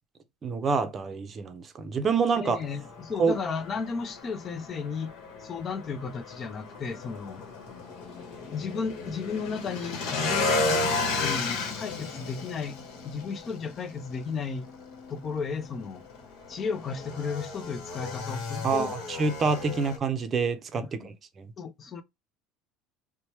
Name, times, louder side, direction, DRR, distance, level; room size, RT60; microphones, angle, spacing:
voice 1, 0.4-2.6 3.2-3.4 18.6-21.5, right 5 dB, 30° right, 0.6 m, -27 dB
voice 2, 2.4-5.1 5.4-7.4 8.5-12.7 13.0-14.7 15.1-16.0 16.5-18.9 20.8-21.1 21.6-22.0, left 5 dB, 30° left, 0.5 m, -34 dB
Motorcycle / Engine, 2.5-20.0, left 3 dB, 65° left, 1.1 m, -34 dB
2.9 x 2.1 x 3.0 m
supercardioid pair, 125°, 0 cm